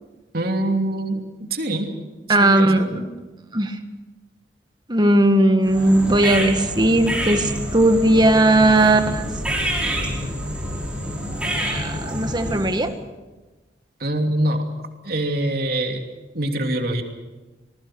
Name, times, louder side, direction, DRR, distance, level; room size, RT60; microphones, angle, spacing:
voice 1, 0.3-2.0 2.4-2.9 14.0-14.6 15.0-16.1 16.3-17.0, right 1 dB, 60° right, 3 dB, 2.9 m, -24 dB
voice 2, 2.3-3.1 3.5-3.8 4.9-9.3 11.6-12.9, right 1 dB, 25° right, 7 dB, 1.6 m, -17 dB
sound 1, 5.6-12.9, equal, 5° right, 5.4 m, -27 dB
26.0 x 20.5 x 6.2 m, 1.2 s
head